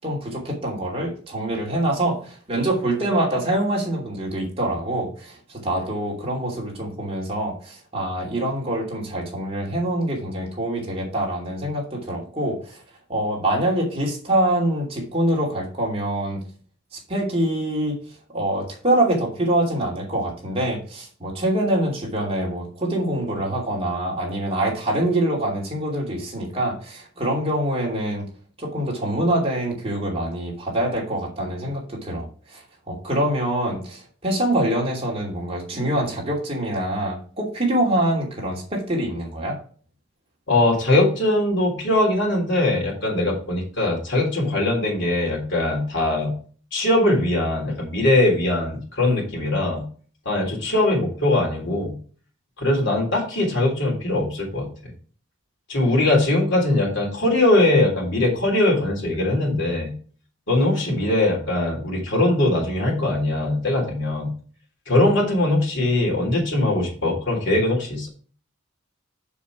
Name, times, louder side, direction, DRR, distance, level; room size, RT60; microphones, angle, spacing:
voice 1, 0.0-5.4 5.6-12.8 13.1-16.4 16.9-18.0 18.3-28.3 28.6-32.3 32.5-39.6, right 1 dB, 30° right, -2 dB, 2.7 m, -25 dB
voice 2, 40.5-46.3 46.7-49.8 50.3-51.9 52.6-54.7 55.7-59.9 60.5-64.3 64.9-68.1, left 1 dB, 65° left, -1 dB, 3.6 m, -21 dB
7.2 x 6.9 x 4.7 m, 0.42 s
head